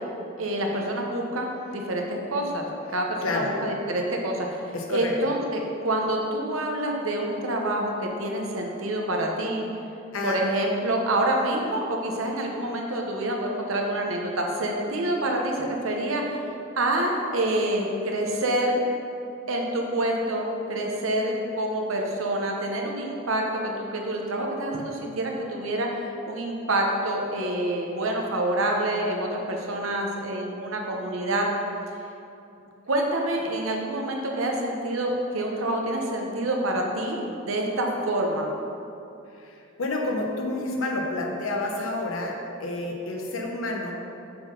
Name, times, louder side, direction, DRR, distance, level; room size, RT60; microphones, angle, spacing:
voice 1, 0.4-2.7 2.9-4.6 4.9-9.7 10.2-16.4 16.8-18.8 19.5-23.5 23.9-25.9 26.3-31.5 32.9-38.5, right 1 dB, 75° right, 1 dB, 0.9 m, -27 dB
voice 2, 3.2-3.5 4.7-5.1 10.1-10.4 39.4-43.9, left 2 dB, 80° left, 1 dB, 0.9 m, -29 dB
6.9 x 3.9 x 5.2 m, 2.7 s
head